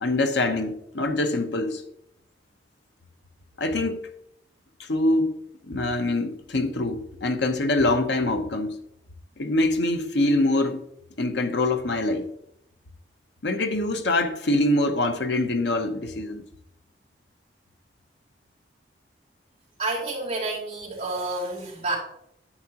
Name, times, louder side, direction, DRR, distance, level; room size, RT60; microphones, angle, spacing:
voice 1, 0.0-1.8 3.6-4.0 4.8-5.4 5.6-8.8 9.4-10.8 11.2-12.3 13.4-16.5, left 2 dB, 75° left, 0.9 m, -24 dB
voice 2, 19.8-22.0, right 2 dB, 35° right, 3.5 m, -29 dB
9.8 x 7.6 x 2.9 m
head